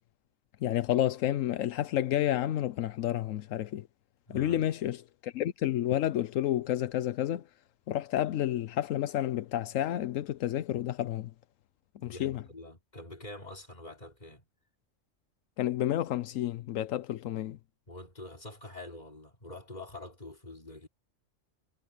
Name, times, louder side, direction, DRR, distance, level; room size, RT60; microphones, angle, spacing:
voice 1, 0.6-3.9 4.3-7.4 7.9-11.3 12.0-12.4 15.6-17.6, left 12 dB, 85° left, 1.0 m, -30 dB
voice 2, 4.3-4.6 12.0-14.5 17.9-20.9, left 2 dB, 35° left, 3.4 m, -46 dB
omnidirectional pair, 1.3 m